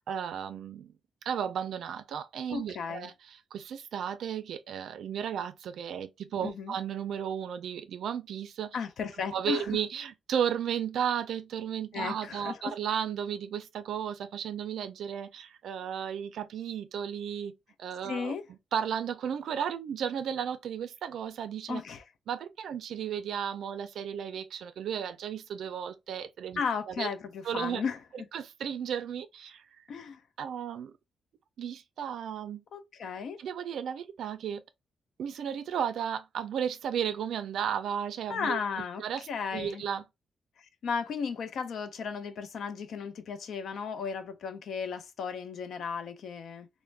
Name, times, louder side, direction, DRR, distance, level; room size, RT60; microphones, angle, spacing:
voice 1, 0.1-0.9 1.2-3.1 3.5-8.8 9.3-17.5 17.8-18.3 18.7-21.8 22.3-27.1 27.4-27.8 28.3-29.6 30.4-30.9 31.6-32.6 33.4-34.6 35.2-38.6 39.0-40.0, right 8 dB, 85° right, 0.3 m, -34 dB
voice 2, 2.5-3.1 6.4-6.8 8.7-9.8 11.9-12.8 18.1-18.4 21.7-22.0 26.6-28.3 29.9-30.2 32.7-33.4 38.3-39.8 40.6-46.7, left 6 dB, 70° left, 0.4 m, -35 dB
3.2 x 2.0 x 2.3 m
wide cardioid pair, 135°, 0 cm